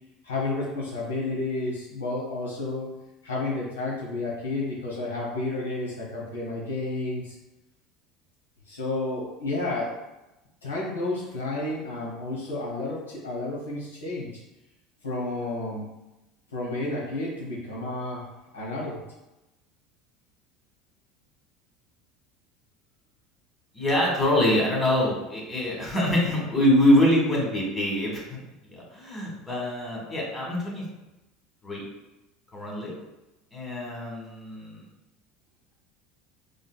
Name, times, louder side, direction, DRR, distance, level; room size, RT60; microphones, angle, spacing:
voice 1, 0.2-2.9 3.2-7.3 8.7-9.9 10.6-14.3 15.0-15.9 16.5-18.2 18.5-19.0, left 2 dB, 90° left, -6 dB, 1.2 m, -31 dB
voice 2, 23.7-28.4 28.7-30.8 31.6-31.8 32.5-32.9 33.5-34.8, left 1 dB, 20° left, -2 dB, 1.5 m, -24 dB
3.7 x 3.5 x 2.2 m, 0.98 s
hypercardioid pair, 75°, 0 cm